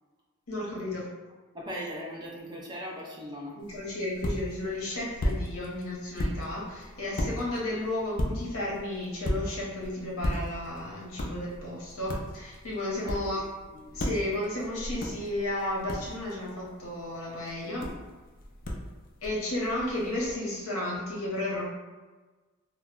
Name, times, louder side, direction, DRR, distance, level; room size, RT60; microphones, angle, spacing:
voice 1, 0.5-1.1 3.6-13.5 13.9-17.9 19.2-21.7, left 1 dB, 75° left, -5 dB, 0.8 m, -33 dB
voice 2, 1.5-3.6 13.0-13.4 13.7-14.0, equal, 20° right, -3 dB, 0.5 m, -39 dB
sound 1, 3.6-20.4, left 1 dB, 40° left, 0.3 m, -37 dB
2.1 x 2.0 x 3.6 m, 1.3 s
head